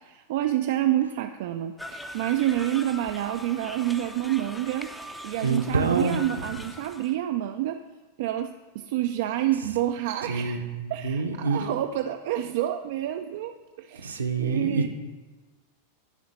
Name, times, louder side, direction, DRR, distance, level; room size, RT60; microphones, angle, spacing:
voice 1, 0.0-4.9 5.2-7.8 8.2-14.9, right 12 dB, 50° right, 7 dB, 0.3 m, -28 dB
sound 1, 1.8-7.1, left 1 dB, 5° left, 0.5 m, -41 dB
voice 2, 5.4-6.2 10.2-11.7 14.0-14.9, right 4 dB, 70° right, 5 dB, 0.7 m, -26 dB
10.5 x 3.9 x 6.4 m, 1.3 s
figure-of-eight pair, 90°, 0 cm